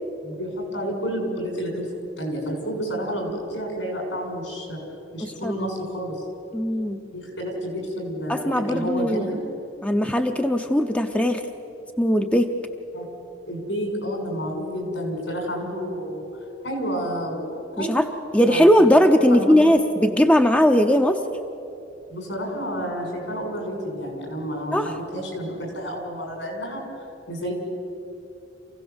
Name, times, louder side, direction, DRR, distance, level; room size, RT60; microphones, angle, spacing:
voice 1, 0.2-1.9 2.2-4.8 5.1-6.2 7.1-9.4 12.9-13.1 13.5-16.2 16.6-17.4 17.8-17.9 18.4-18.8 19.3-19.5 22.1-26.9 27.3-27.5, equal, 75° left, 1 dB, 6.0 m, -30 dB
voice 2, 5.2-5.5 6.5-7.0 8.3-9.3 9.8-11.4 12.0-12.5 17.8-18.0 18.3-21.2 24.7-24.9, equal, 5° left, 6 dB, 0.7 m, -19 dB
27.5 x 16.5 x 7.1 m, 2.8 s
head